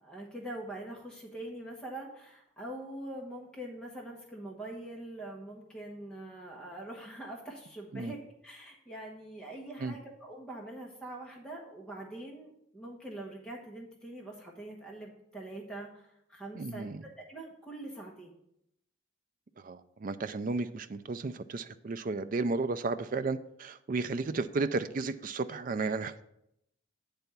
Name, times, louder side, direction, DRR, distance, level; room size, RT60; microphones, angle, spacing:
voice 1, 0.0-16.9 17.2-18.3, right 1 dB, 5° left, -3 dB, 1.1 m, -44 dB
voice 2, 16.6-17.0 19.6-26.2, right 3 dB, 40° right, 11 dB, 0.3 m, -33 dB
9.0 x 3.4 x 6.8 m, 0.80 s
head